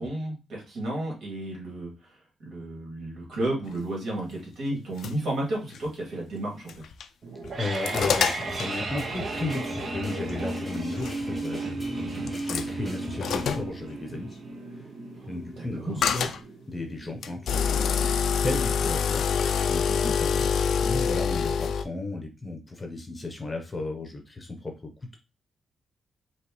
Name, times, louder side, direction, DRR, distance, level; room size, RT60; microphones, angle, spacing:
voice 1, 0.0-6.8 12.0-12.3 15.2-15.3 15.6-16.0 19.9-20.1, right 1 dB, 65° right, -2 dB, 2.7 m, -33 dB
sound 1, 4.7-5.1 5.7-5.8 6.7-7.0 7.4-8.7 10.3-10.4 11.0-11.1 12.3-12.7 13.2-13.7 16.0-16.4 17.2-21.8, left 7 dB, 70° left, 0.4 m, -26 dB
sound 2, 7.2-18.2, right 2 dB, 45° right, 0.8 m, -35 dB
voice 2, 7.6-14.4 14.8-14.9 15.3-16.3 16.7-19.2 19.7-25.2, left 2 dB, 20° left, 3 dB, 0.9 m, -34 dB
sound 3, 7.9-13.6, right 1 dB, ahead, 1.4 m, -41 dB
5.0 x 3.1 x 3.1 m, 0.28 s
wide cardioid pair, 155°, 0 cm